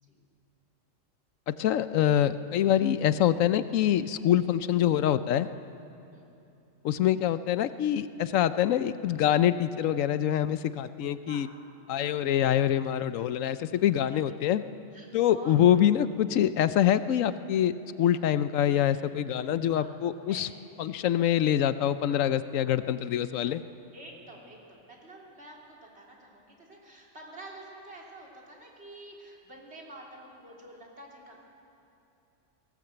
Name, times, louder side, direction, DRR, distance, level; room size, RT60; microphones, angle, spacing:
voice 1, 1.5-5.5 6.8-11.5 11.9-14.6 15.1-20.5 20.8-23.6, left 10 dB, 80° left, 13 dB, 1.0 m, -25 dB
voice 2, 23.9-31.4, right 1 dB, 55° right, -3 dB, 3.6 m, -49 dB
18.5 x 18.0 x 7.9 m, 2.7 s
omnidirectional pair, 1.4 m